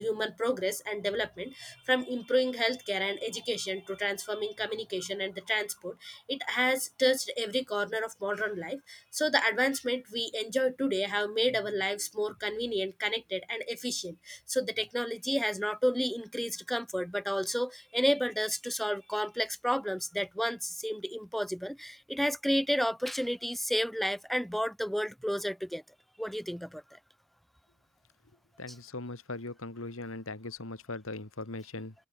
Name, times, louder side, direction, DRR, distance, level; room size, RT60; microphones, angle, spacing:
voice 1, 0.0-25.8 26.2-26.8 28.7-28.8, equal, ahead, 1.9 m, -31 dB
voice 2, 28.6-31.9, left 2 dB, 75° left, 2.3 m, -39 dB
open air
head